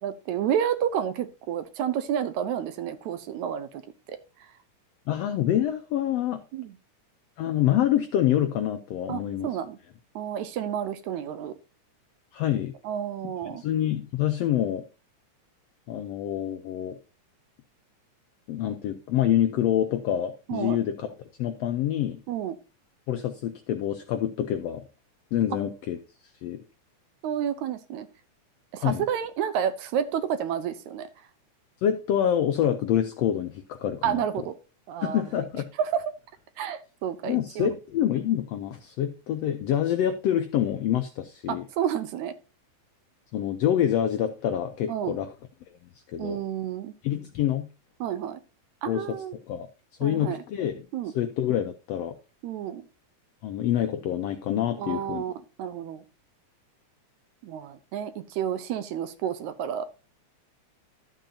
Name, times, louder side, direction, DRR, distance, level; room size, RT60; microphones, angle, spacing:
voice 1, 0.0-3.8 4.1-4.2 6.5-6.7 9.1-9.8 10.2-11.5 12.8-13.6 20.5-20.8 22.3-22.6 27.2-28.1 28.7-31.1 34.0-34.6 34.9-35.2 35.8-36.0 36.6-37.7 41.5-42.3 44.9-45.1 46.2-46.9 48.0-48.4 48.8-49.4 50.0-50.4 50.9-51.1 52.4-52.9 54.8-56.0 57.4-59.9, right 9 dB, 75° right, 1.9 m, -30 dB
voice 2, 5.1-6.4 7.4-9.5 12.3-12.7 13.5-14.8 15.9-17.0 18.5-21.1 21.4-22.2 23.1-24.8 25.3-26.0 26.4-26.6 28.8-29.0 31.8-34.2 35.0-35.6 37.2-41.6 43.3-45.3 46.1-46.4 47.0-47.7 48.9-49.2 49.5-49.7 50.0-50.8 51.1-52.1 53.4-55.2, left 11 dB, 80° left, 1.4 m, -26 dB
12.5 x 7.7 x 2.8 m
omnidirectional pair, 3.7 m